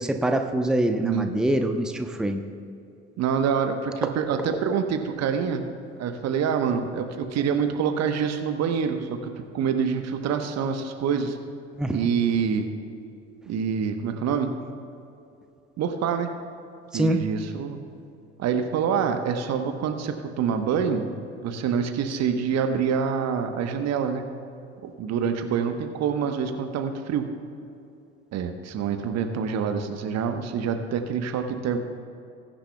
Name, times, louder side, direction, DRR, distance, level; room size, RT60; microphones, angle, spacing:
voice 1, 0.0-2.5 4.0-4.1 11.8-12.1 16.9-17.2, right 1 dB, ahead, 6 dB, 0.8 m, -25 dB
voice 2, 3.2-5.6 6.0-11.4 11.9-12.7 13.5-14.5 15.8-16.3 16.9-17.8 18.4-24.2 24.8-27.3 28.3-31.8, right 7 dB, 50° right, 6 dB, 1.1 m, -26 dB
21.0 x 10.0 x 2.3 m, 2.7 s
figure-of-eight pair, 50°, 34 cm